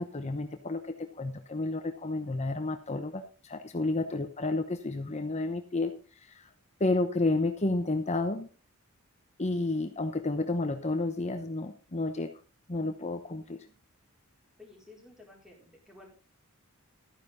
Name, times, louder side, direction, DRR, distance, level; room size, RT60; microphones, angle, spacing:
voice 1, 0.0-5.9 6.2-6.5 6.8-8.5 9.4-12.3 12.7-13.7, left 2 dB, 30° left, 7 dB, 0.9 m, -31 dB
voice 2, 14.6-16.1, left 2 dB, 5° right, -1 dB, 4.6 m, -54 dB
13.5 x 10.0 x 3.9 m, 0.35 s
head